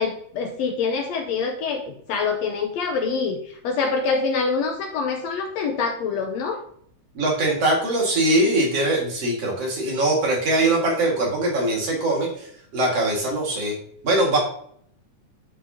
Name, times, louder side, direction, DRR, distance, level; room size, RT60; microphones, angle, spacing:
voice 1, 0.0-6.6, left 5 dB, 70° left, 3 dB, 1.7 m, -25 dB
voice 2, 7.1-12.5 12.7-13.7 14.0-14.4, right 1 dB, 55° right, -2 dB, 2.9 m, -22 dB
10.0 x 5.6 x 2.8 m, 0.65 s
omnidirectional pair, 3.5 m